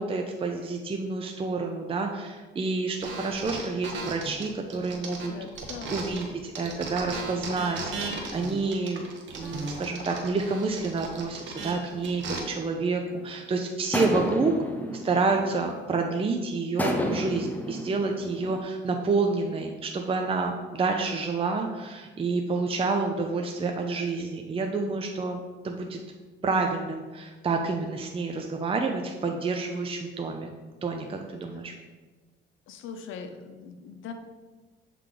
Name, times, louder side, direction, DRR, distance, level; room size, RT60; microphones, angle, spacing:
voice 1, 0.0-5.3 5.9-9.1 9.4-14.5 15.0-26.0 26.4-30.5 30.8-31.7, right 3 dB, 30° right, 3 dB, 0.6 m, -29 dB
sound 1, 3.0-6.3 6.5-12.4, right 3 dB, 70° right, 1.1 m, -36 dB
voice 2, 5.3-6.1 31.5-31.6 32.7-34.1, left 6 dB, 85° left, 7 dB, 0.7 m, -41 dB
sound 2, 13.1-13.3 13.9-16.1 16.8-18.6, equal, 10° left, 0.7 m, -31 dB
7.4 x 3.3 x 3.8 m, 1.3 s
cardioid pair, 90°, 20 cm